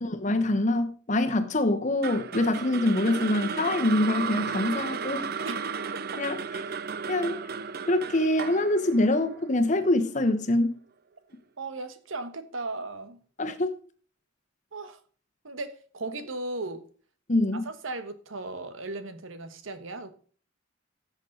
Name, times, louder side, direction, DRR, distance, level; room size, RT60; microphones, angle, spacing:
voice 1, 0.0-5.3 6.2-6.4 7.1-7.4 7.9-10.8 13.4-13.7 17.3-17.6, left 1 dB, 40° left, 1.1 m, -25 dB
sound 1, 2.0-10.2, right 6 dB, 50° right, 0.5 m, -34 dB
voice 2, 11.6-13.2 14.7-15.0 15.4-16.9 17.5-20.1, right 2 dB, 85° right, 1.3 m, -36 dB
16.0 x 6.5 x 3.9 m
head